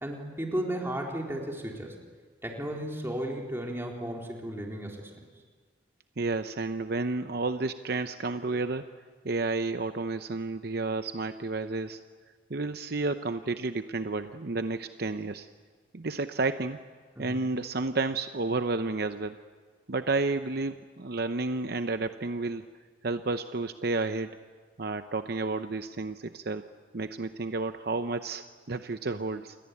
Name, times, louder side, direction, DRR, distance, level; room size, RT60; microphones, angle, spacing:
voice 1, 0.0-2.0 2.4-5.1 17.2-17.4, right 1 dB, 15° right, 0 dB, 3.8 m, -34 dB
voice 2, 6.2-8.9 9.2-12.0 12.5-15.5 15.9-16.8 17.2-19.4 19.9-22.6 23.0-24.3 24.8-26.6 26.9-29.6, right 3 dB, 55° right, 9 dB, 0.7 m, -31 dB
28.5 x 22.0 x 8.5 m, 1.5 s
head